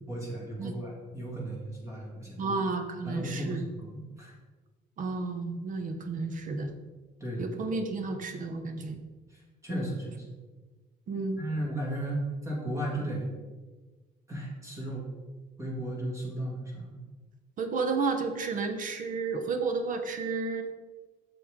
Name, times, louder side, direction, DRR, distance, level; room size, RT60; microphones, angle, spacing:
voice 1, 0.1-2.6 3.0-4.3 7.2-7.5 9.6-10.2 11.4-13.3 14.3-15.1 15.6-17.0, right 1 dB, 15° right, -3 dB, 2.7 m, -35 dB
voice 2, 2.4-3.6 5.0-6.7 7.4-9.0 11.1-11.4 17.6-20.6, right 4 dB, 50° right, 7 dB, 1.1 m, -32 dB
8.3 x 7.1 x 3.8 m, 1.3 s
cardioid pair, 110°, 17 cm